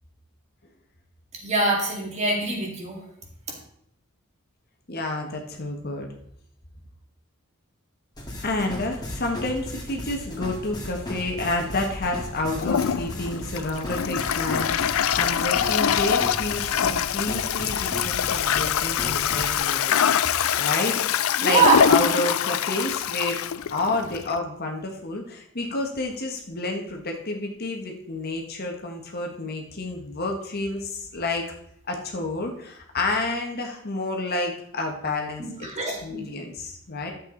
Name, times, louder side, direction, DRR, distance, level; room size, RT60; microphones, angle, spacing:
voice 1, 1.4-3.0 21.4-21.8 35.4-36.2, right 3 dB, 35° right, -1 dB, 2.5 m, -23 dB
voice 2, 4.9-6.1 8.4-20.0 20.6-21.0 21.4-23.4 23.7-31.4 31.9-35.4 36.0-37.1, left 2 dB, 50° left, 2 dB, 1.5 m, -29 dB
sound 1, 8.2-19.5, left 1 dB, 20° left, 2.3 m, -36 dB
Toilet flush, 12.6-24.4, left 8 dB, 80° left, 0.4 m, -24 dB
11.5 x 7.8 x 4.0 m, 0.72 s
head